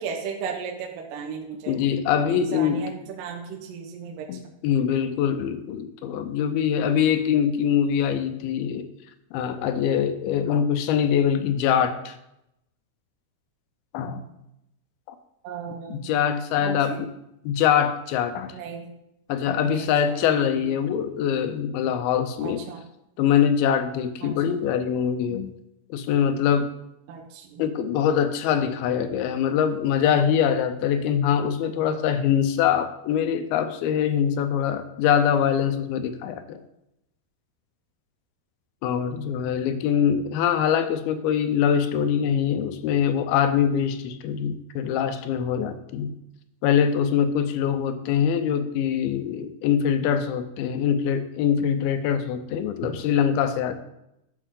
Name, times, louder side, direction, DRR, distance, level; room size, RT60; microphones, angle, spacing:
voice 1, 0.0-1.8 2.3-4.3 15.4-16.1 16.6-17.0 18.5-18.9 19.6-20.7 22.4-22.8 24.2-24.7 27.1-27.6, right 6 dB, 75° right, 1 dB, 2.2 m, -36 dB
voice 2, 1.7-2.9 4.3-8.9 9.3-12.2 13.9-14.2 15.9-17.1 17.4-18.5 19.3-22.6 23.2-25.5 25.9-26.7 27.6-36.6 38.8-46.1 46.6-53.7, left 8 dB, 80° left, 9 dB, 2.4 m, -23 dB
11.0 x 6.3 x 3.7 m, 0.85 s
omnidirectional pair, 4.6 m